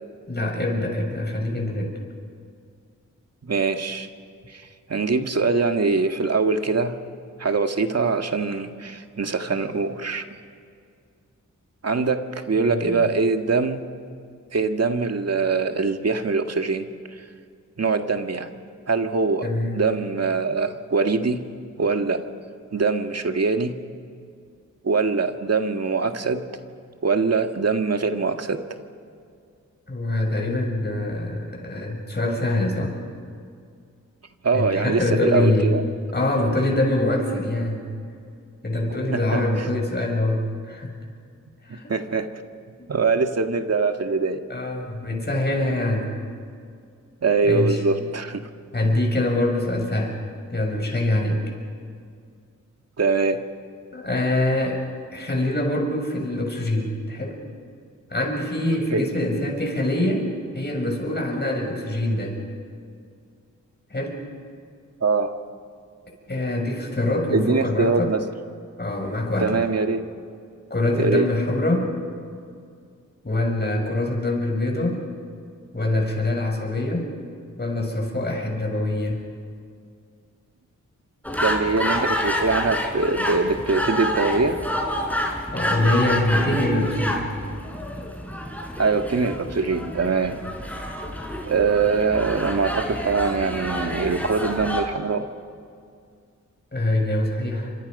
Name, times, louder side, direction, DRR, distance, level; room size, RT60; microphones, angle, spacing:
voice 1, 0.3-1.9 12.6-13.1 19.4-19.8 29.9-33.0 34.5-35.8 36.1-37.8 38.6-40.9 41.6-41.9 44.5-46.1 47.4-47.8 48.7-50.2 50.5-51.4 53.9-54.8 55.1-57.4 58.1-60.3 60.5-62.4 63.9-64.2 66.3-68.1 68.8-69.6 70.7-71.9 73.2-75.0 75.7-77.1 77.6-79.2 85.5-87.3 96.7-97.7, left 1 dB, 30° left, 1 dB, 7.1 m, -24 dB
voice 2, 3.5-4.1 4.5-6.9 7.4-10.2 11.8-13.8 14.5-16.9 17.8-18.5 18.9-19.5 19.7-21.4 21.8-22.2 22.7-23.8 24.8-26.5 27.0-28.6 34.4-35.8 39.1-39.7 41.7-42.3 42.9-44.4 47.2-48.5 53.0-53.4 58.9-59.1 65.0-65.3 67.3-68.2 69.4-70.0 71.0-71.3 81.4-84.6 88.8-90.4 91.5-95.3, right 4 dB, 50° right, 6 dB, 1.9 m, -23 dB
sound 1, 81.2-94.8, equal, 5° left, 5.0 m, -28 dB
29.5 x 26.0 x 5.5 m, 2.3 s
cardioid pair, 60°, 32 cm